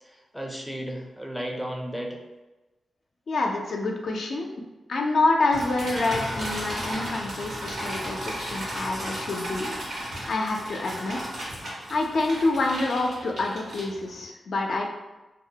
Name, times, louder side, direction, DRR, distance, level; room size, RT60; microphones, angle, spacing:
voice 1, 0.0-2.2, equal, ahead, 0 dB, 0.4 m, -34 dB
voice 2, 3.3-4.5 4.9-9.7 10.3-11.2 11.6-14.8, left 2 dB, 70° left, 1 dB, 0.3 m, -27 dB
sound 1, 5.5-14.2, equal, 90° right, 0.9 m, -34 dB
2.2 x 2.0 x 2.7 m, 1.1 s
cardioid pair, 70°, 0 cm